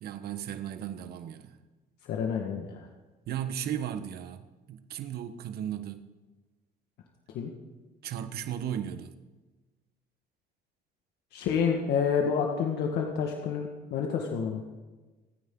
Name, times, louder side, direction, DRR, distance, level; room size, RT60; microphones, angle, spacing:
voice 1, 0.0-1.5 3.3-6.1 8.0-9.1, right 10 dB, 70° right, 9 dB, 1.3 m, -36 dB
voice 2, 2.1-2.9 7.3-7.5 11.3-14.6, left 6 dB, 75° left, 1 dB, 1.8 m, -29 dB
28.0 x 9.7 x 3.9 m, 1.2 s
cardioid pair, 110°, 17 cm